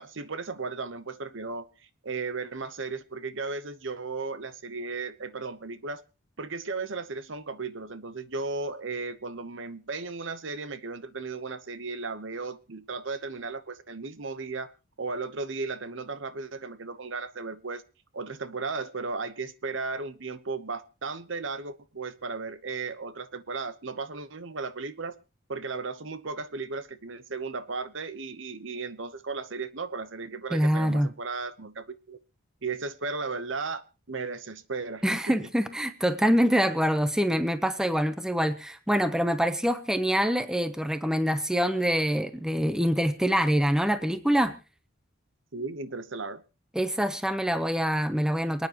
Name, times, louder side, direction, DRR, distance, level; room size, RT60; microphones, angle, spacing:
voice 1, 0.0-1.7 2.0-6.0 6.4-14.7 15.0-17.8 18.1-25.2 25.5-32.2 32.6-35.4 45.5-46.4, right 4 dB, 60° right, 0.9 m, -35 dB
voice 2, 30.5-31.1 35.0-44.6 46.7-48.7, equal, 5° right, 0.8 m, -25 dB
28.0 x 9.5 x 3.0 m
head